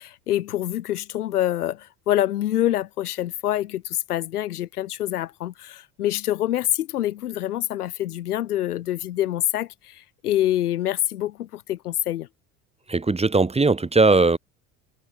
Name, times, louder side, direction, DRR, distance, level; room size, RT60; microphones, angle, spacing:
voice 1, 0.0-12.3, left 13 dB, 80° left, 2.6 m, -26 dB
voice 2, 12.9-14.4, right 3 dB, 15° right, 1.6 m, -19 dB
hypercardioid pair, 70°, 44 cm